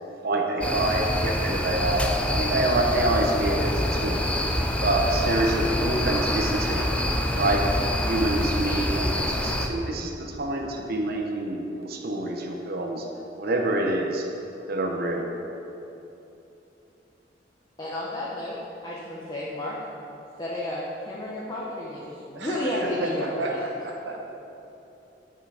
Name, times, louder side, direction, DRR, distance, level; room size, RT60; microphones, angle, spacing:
voice 1, 0.2-4.2 4.8-6.9 7.3-7.6 8.0-13.0 13.4-14.3 14.7-15.3, right 2 dB, 60° right, 1 dB, 0.8 m, -26 dB
sound 1, 0.6-9.7, left 1 dB, 5° left, 0.5 m, -26 dB
voice 2, 17.8-18.6 18.8-19.8 20.4-23.6, left 1 dB, 25° left, -6 dB, 1.0 m, -32 dB
voice 3, 22.3-24.3, right 2 dB, 80° right, 0 dB, 1.2 m, -32 dB
9.2 x 5.5 x 4.9 m, 2.9 s
head